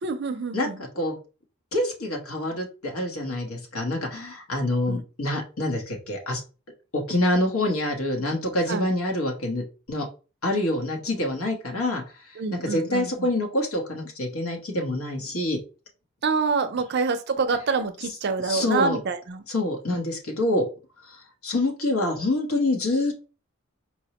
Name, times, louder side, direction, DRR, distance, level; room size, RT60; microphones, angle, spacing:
voice 1, 0.0-0.8 4.9-5.0 8.7-8.9 12.4-13.1 16.2-19.4, right 4 dB, 50° right, 9 dB, 0.4 m, -26 dB
voice 2, 0.5-1.2 1.7-6.4 6.9-10.1 10.4-15.6 18.0-18.1 18.4-19.0 19.5-20.7 21.0-23.2, left 1 dB, 85° left, 2 dB, 1.1 m, -26 dB
4.4 x 2.1 x 2.8 m, 0.33 s
head